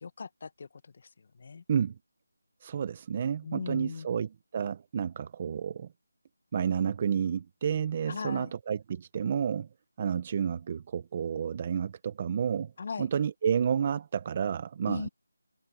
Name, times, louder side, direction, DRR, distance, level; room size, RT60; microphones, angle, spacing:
voice 1, 0.0-1.6 3.4-4.1 8.0-8.5 12.8-13.1 14.9-15.1, left 5 dB, 35° left, 1.2 m, -39 dB
voice 2, 2.6-5.9 6.5-9.7 10.0-12.7 13.0-15.1, right 7 dB, 25° right, 0.8 m, -30 dB
figure-of-eight pair, 170°, 0 cm